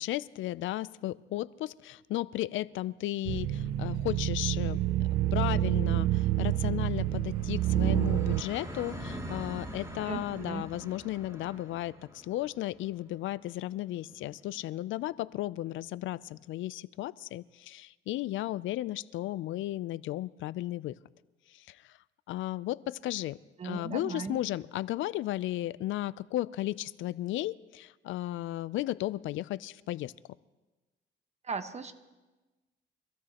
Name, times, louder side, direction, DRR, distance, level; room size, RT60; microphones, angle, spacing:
voice 1, 0.0-4.8 5.3-20.9 21.7-21.8 22.3-23.4 23.6-30.1, left 15 dB, 80° left, 19 dB, 0.4 m, -34 dB
sound 1, 3.2-8.4, right 14 dB, 85° right, 0.5 m, -28 dB
sound 2, 4.4-15.5, equal, 15° right, 2.5 m, -46 dB
voice 2, 10.0-10.6 23.6-24.4 31.4-31.9, right 4 dB, 35° right, 9 dB, 1.2 m, -37 dB
25.0 x 16.5 x 2.9 m, 1.1 s
cardioid pair, 90°, 20 cm